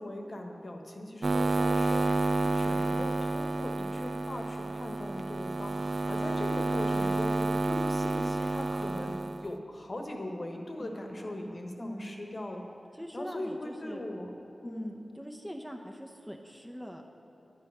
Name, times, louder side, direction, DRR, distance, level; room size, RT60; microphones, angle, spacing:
voice 1, 0.0-12.6 13.1-14.3 14.6-15.0, left 1 dB, 45° left, 2 dB, 1.2 m, -40 dB
sound 1, 1.2-9.5, right 2 dB, 55° right, 0.3 m, -30 dB
voice 2, 10.8-12.2 12.9-14.0 14.6-17.0, equal, 5° right, 2 dB, 0.8 m, -43 dB
10.5 x 8.7 x 5.6 m, 2.9 s
wide cardioid pair, 65°, 0 cm